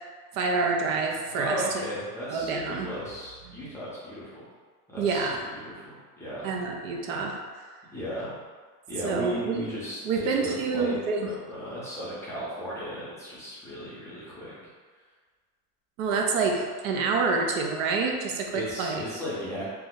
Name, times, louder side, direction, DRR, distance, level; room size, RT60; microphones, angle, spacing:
voice 1, 0.3-1.6 2.3-2.9 5.0-5.4 6.4-7.4 9.0-9.6 10.0-11.3 16.0-19.0, right 4 dB, 65° right, 1 dB, 0.6 m, -27 dB
voice 2, 1.4-4.4 4.9-6.5 7.9-8.3 8.9-14.5 18.2-19.6, equal, 5° left, -10 dB, 0.5 m, -36 dB
2.9 x 2.1 x 3.6 m, 1.5 s
supercardioid pair, 145°, 45 cm